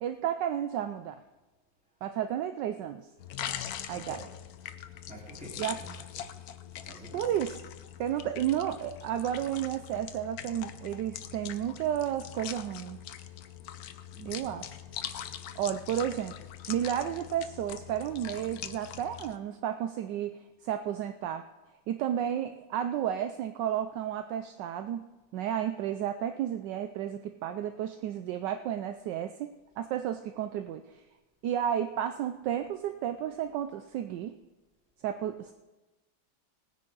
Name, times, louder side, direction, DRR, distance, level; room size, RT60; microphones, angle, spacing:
voice 1, 0.0-1.2 2.0-3.1 3.9-4.2 5.6-5.7 7.1-7.5 8.0-13.0 14.3-14.6 15.5-16.3 16.7-21.4 21.9-25.1 25.3-31.0 31.4-34.3 35.0-35.5, right 10 dB, 75° right, 8 dB, 1.2 m, -32 dB
sound 1, 3.2-19.4, left 10 dB, 65° left, 1.0 m, -42 dB
voice 2, 3.9-4.3 5.1-6.1 6.7-7.4 10.0-10.1 14.1-14.6 16.2-16.3, right 1 dB, 5° right, -5 dB, 3.5 m, -48 dB
18.5 x 9.9 x 3.8 m, 1.1 s
omnidirectional pair, 2.0 m